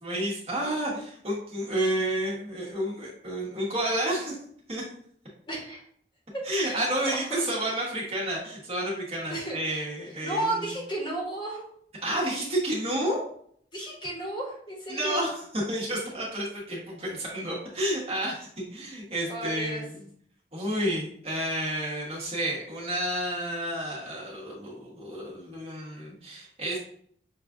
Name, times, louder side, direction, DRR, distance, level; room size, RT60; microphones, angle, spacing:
voice 1, 0.0-4.4 4.7-4.8 6.4-10.6 12.0-13.2 14.9-20.1 20.5-26.8, right 1 dB, 35° right, -4 dB, 1.3 m, -30 dB
voice 2, 5.5-5.8 6.3-7.4 9.3-9.6 10.2-11.7 13.7-15.2 19.3-19.8, right 1 dB, 25° left, -3 dB, 1.0 m, -33 dB
6.6 x 2.4 x 2.5 m, 0.64 s
head